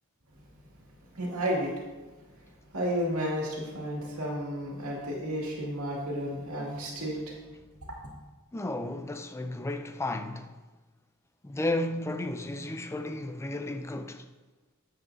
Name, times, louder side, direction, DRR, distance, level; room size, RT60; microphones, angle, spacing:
voice 1, 1.1-1.7 2.7-7.4 8.0-8.1, equal, 75° right, 2.1 m, -32 dB
voice 2, 8.5-10.5 11.4-14.3, left 1 dB, 10° left, 0.4 m, -33 dB
9.8 x 7.7 x 2.7 m
head